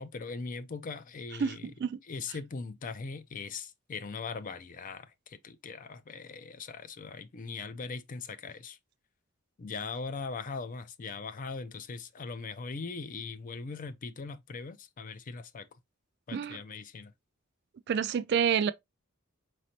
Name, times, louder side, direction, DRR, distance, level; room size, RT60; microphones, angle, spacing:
voice 1, 0.0-1.7 2.1-8.8 9.6-15.7 16.3-17.1, left 4 dB, 40° left, 0.4 m, -40 dB
voice 2, 1.4-2.0 16.3-16.6 17.9-18.7, right 7 dB, 55° right, 0.3 m, -28 dB
4.9 x 3.1 x 2.7 m
head